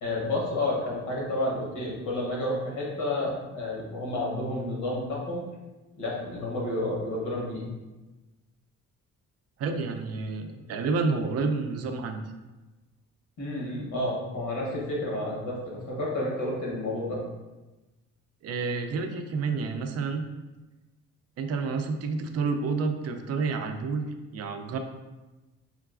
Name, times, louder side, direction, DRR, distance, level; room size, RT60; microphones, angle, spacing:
voice 1, 0.0-5.4 6.0-7.6 13.4-17.2, left 1 dB, 80° left, -4 dB, 1.1 m, -30 dB
voice 2, 9.6-12.2 18.4-20.2 21.4-24.1 24.3-24.8, right 4 dB, 55° right, 6 dB, 0.4 m, -29 dB
3.7 x 2.3 x 2.4 m, 1.1 s
cardioid pair, 90°, 30 cm